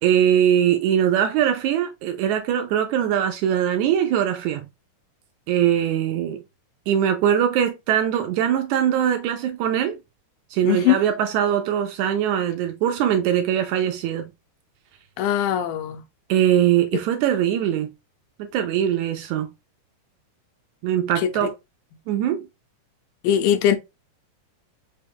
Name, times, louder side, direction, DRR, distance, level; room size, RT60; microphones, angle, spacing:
voice 1, 0.0-4.7 5.5-6.4 6.9-10.0 10.5-14.3 16.3-17.9 18.4-19.5 20.8-21.5 22.1-22.5, right 10 dB, 80° right, 1.7 m, -21 dB
voice 2, 10.6-11.0 15.2-16.0 21.2-21.3 23.2-23.8, left 11 dB, 90° left, 2.3 m, -20 dB
5.2 x 2.3 x 3.4 m
omnidirectional pair, 3.8 m